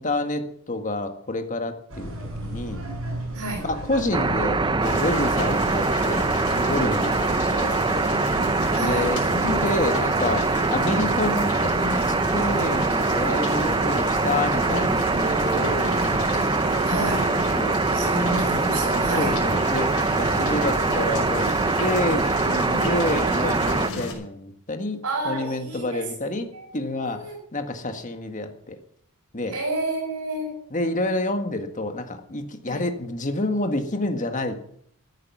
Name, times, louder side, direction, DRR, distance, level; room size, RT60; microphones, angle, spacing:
voice 1, 0.0-2.1 2.4-2.8 3.6-6.3 6.5-8.1 8.7-16.0 17.6-18.1 19.2-21.5 21.8-28.8 29.3-29.5 30.7-34.6, left 2 dB, 35° left, 7 dB, 1.6 m, -28 dB
sound 1, 1.9-9.8, right 1 dB, 70° right, 6.3 m, -36 dB
sound 2, 4.1-23.9, right 3 dB, 20° right, 0.6 m, -23 dB
sound 3, 4.8-24.1, left 2 dB, 70° left, 5.8 m, -33 dB
voice 2, 8.7-9.6 14.6-14.9 15.1-16.2 16.9-17.3 17.9-19.4 22.7-22.9 23.8-24.1 25.0-26.7 27.0-27.4 29.5-30.5 32.6-32.8, right 1 dB, 90° right, -3 dB, 5.5 m, -30 dB
14.0 x 9.9 x 7.2 m, 0.66 s
head